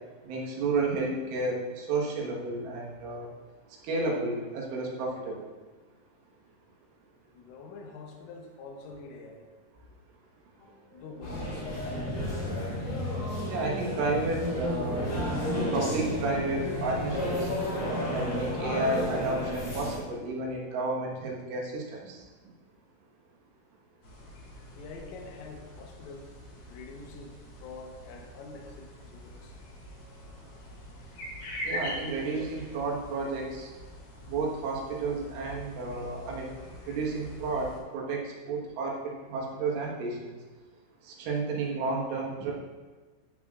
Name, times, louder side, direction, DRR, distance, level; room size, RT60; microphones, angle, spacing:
voice 1, 0.3-3.3 3.8-5.5 13.5-15.2 15.7-17.5 18.1-22.2 31.7-33.7 34.3-36.5 36.9-40.2 41.1-42.5, right 3 dB, 75° right, -2 dB, 3.8 m, -31 dB
voice 2, 7.3-9.5 10.9-12.3 24.8-26.3 26.7-29.6 31.0-31.7, left 3 dB, 80° left, 2 dB, 3.6 m, -46 dB
sound 1, 10.6-12.7, right 1 dB, 65° left, 3.3 m, -47 dB
sound 2, 11.2-20.0, left 1 dB, 35° left, 2.9 m, -32 dB
sound 3, 24.0-37.8, equal, 50° left, 3.9 m, -44 dB
14.0 x 8.2 x 2.5 m, 1.3 s
omnidirectional pair, 5.8 m